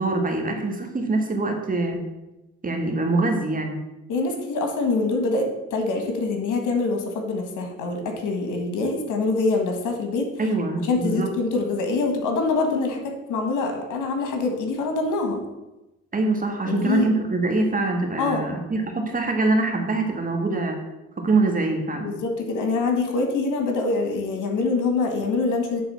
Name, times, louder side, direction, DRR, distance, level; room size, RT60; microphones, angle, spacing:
voice 1, 0.0-2.0 2.6-3.8 10.4-11.3 16.1-20.8 21.2-22.1, right 2 dB, 30° right, 3 dB, 1.6 m, -24 dB
voice 2, 4.1-10.3 10.8-15.4 16.6-17.1 18.2-18.4 22.0-25.8, left 3 dB, 85° left, 4 dB, 1.6 m, -25 dB
9.4 x 4.0 x 5.7 m, 1.0 s
cardioid pair, 90°, 30 cm